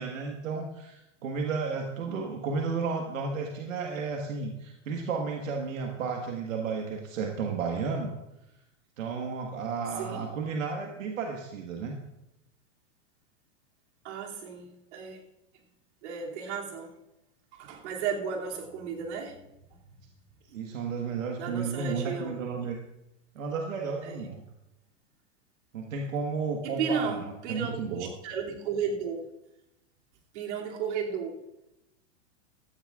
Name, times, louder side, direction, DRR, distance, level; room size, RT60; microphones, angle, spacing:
voice 1, 0.0-8.1 9.0-12.0 20.5-22.8 23.3-24.4 25.7-27.2 27.5-28.1, right 5 dB, 85° right, 1 dB, 1.7 m, -33 dB
voice 2, 9.9-10.3 14.0-15.2 16.0-17.0 17.5-19.4 21.4-22.4 24.0-24.2 26.6-29.3 30.3-31.4, right 6 dB, 60° right, -1 dB, 2.8 m, -34 dB
16.5 x 13.0 x 2.5 m, 0.90 s
hypercardioid pair, 140°, 38 cm